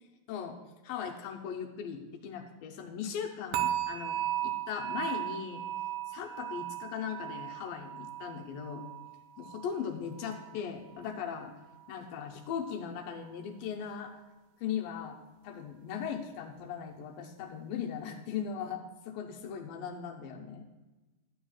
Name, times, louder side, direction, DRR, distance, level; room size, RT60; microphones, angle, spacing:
voice 1, 0.8-5.6 6.1-8.8 9.4-11.5 11.9-14.1 14.6-15.2 15.4-20.7, left 7 dB, 80° left, 2 dB, 2.4 m, -38 dB
sound 1, 3.5-10.6 10.9-11.3 11.8-11.9, right 12 dB, 85° right, 2.4 m, -37 dB
12.5 x 8.7 x 2.4 m, 1.1 s
omnidirectional pair, 4.1 m